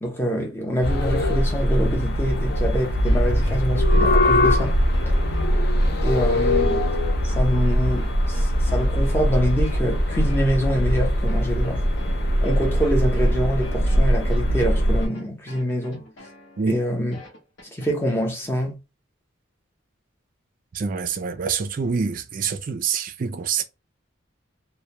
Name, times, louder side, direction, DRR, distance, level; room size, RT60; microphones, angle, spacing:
voice 1, 0.0-4.8 6.0-6.8 7.2-11.8 12.4-16.0 16.7-17.2 17.6-18.7, equal, 10° left, 0.6 m, -25 dB
sound 1, 0.8-15.1, equal, 50° left, 0.4 m, -21 dB
sound 2, 3.0-17.9, left 1 dB, 70° left, 0.8 m, -45 dB
voice 2, 20.7-23.6, right 6 dB, 40° right, 0.3 m, -26 dB
2.2 x 2.1 x 2.8 m
head